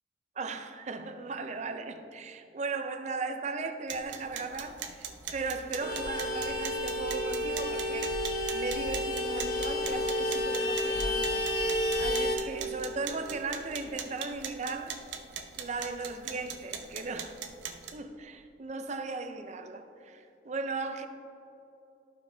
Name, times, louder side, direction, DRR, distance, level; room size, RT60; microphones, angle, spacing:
voice 1, 0.4-8.2 8.5-11.4 12.0-15.0 15.6-17.4 17.9-21.1, right 4 dB, 40° right, 7 dB, 0.5 m, -37 dB
sound 1, 3.9-17.9, right 7 dB, 85° right, 0.6 m, -42 dB
Vehicle horn car horn honking, 5.8-12.4, left 1 dB, 50° left, 0.8 m, -30 dB
13.5 x 4.8 x 2.7 m, 2.8 s
head